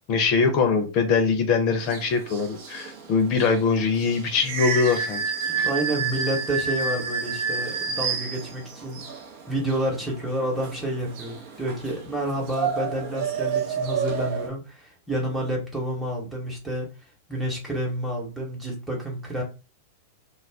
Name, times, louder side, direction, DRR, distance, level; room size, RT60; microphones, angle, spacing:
voice 1, 0.1-5.2 5.6-5.7, left 5 dB, 45° left, 0.6 m, -22 dB
sound 1, 1.8-14.5, right 6 dB, 55° right, 0.7 m, -30 dB
voice 2, 5.5-9.0 9.5-16.9 17.3-19.4, right 1 dB, ahead, 1.0 m, -29 dB
2.3 x 2.1 x 3.4 m
hypercardioid pair, 100°, 0 cm